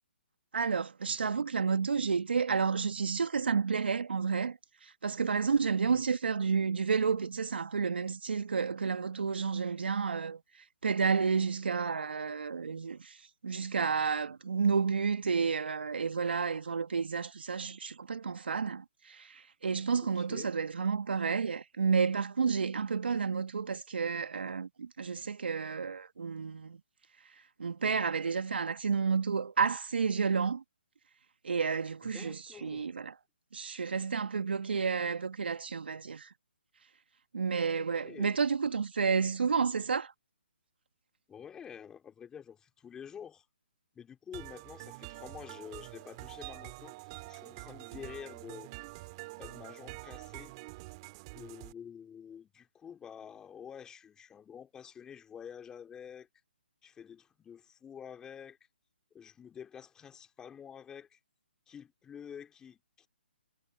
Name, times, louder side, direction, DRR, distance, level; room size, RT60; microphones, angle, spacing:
voice 1, 0.5-10.4 10.8-13.2 13.4-26.8 27.6-30.6 31.4-33.1 33.5-36.3 37.3-40.1, right 5 dB, 70° right, 2.2 m, -31 dB
voice 2, 20.1-20.5 32.0-32.9 37.8-38.4 41.3-43.4 43.9-46.9 47.2-48.7 49.4-50.5 51.3-56.3 56.8-58.6 59.1-61.2 61.7-63.1, left 8 dB, 10° left, 3.2 m, -48 dB
sound 1, 44.3-51.7, right 23 dB, 30° right, 2.0 m, -46 dB
figure-of-eight pair, 140°, 6 cm